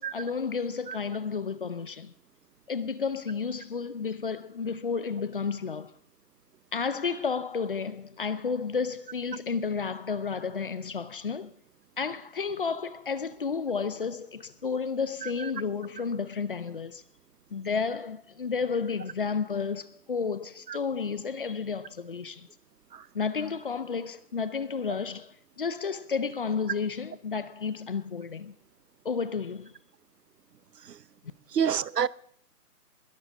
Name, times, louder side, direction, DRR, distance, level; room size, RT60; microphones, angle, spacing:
voice 1, 0.0-2.1 2.7-5.9 6.7-11.5 12.0-17.0 17.5-22.5 23.1-28.5 29.0-29.7, left 5 dB, 35° left, 0.7 m, -32 dB
voice 2, 31.5-32.1, right 8 dB, 90° right, 0.8 m, -27 dB
21.0 x 13.0 x 3.6 m
hypercardioid pair, 160°, 47 cm